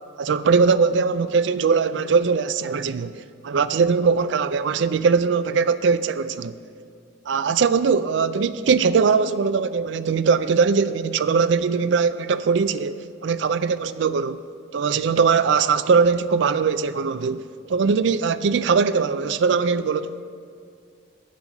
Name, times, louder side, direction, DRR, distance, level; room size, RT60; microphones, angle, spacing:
voice 1, 0.2-3.2 3.4-6.5 7.3-14.4 14.7-17.4 17.7-20.1, right 5 dB, 60° right, 0.4 m, -21 dB
8.3 x 8.1 x 5.9 m
head